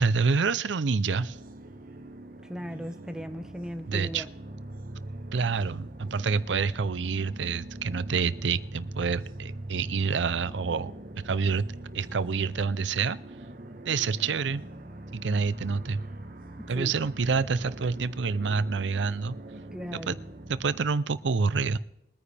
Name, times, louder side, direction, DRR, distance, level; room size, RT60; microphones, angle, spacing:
voice 1, 0.0-1.4 3.9-4.2 5.3-10.9 11.2-11.6 11.9-13.2 13.9-14.6 15.1-16.0 16.7-19.4 19.9-20.2 20.5-21.8, right 5 dB, 85° right, 16 dB, 0.6 m, -27 dB
sound 1, 1.1-20.8, right 1 dB, 50° right, 1.1 m, -42 dB
voice 2, 2.4-4.3 16.6-16.9 19.7-20.4, equal, 5° right, 7 dB, 0.9 m, -38 dB
22.5 x 9.6 x 3.4 m, 0.80 s
head